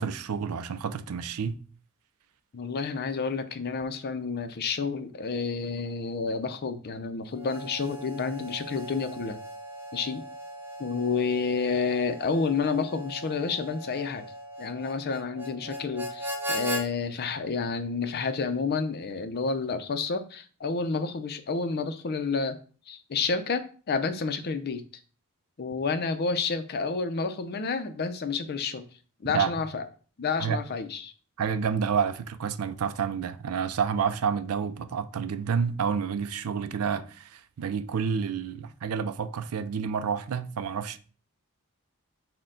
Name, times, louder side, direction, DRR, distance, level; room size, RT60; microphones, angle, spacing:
voice 1, 0.0-1.6 29.3-29.5 30.4-30.6 31.4-41.0, right 6 dB, 80° right, 0.4 m, -29 dB
voice 2, 2.5-9.4 9.9-10.2 10.8-14.3 14.6-22.6 22.9-24.8 25.6-28.8 29.2-29.8 30.2-31.1, left 4 dB, 45° left, 0.5 m, -30 dB
Harmonica, 7.3-16.9, equal, 10° right, 0.6 m, -38 dB
6.3 x 2.2 x 3.7 m
head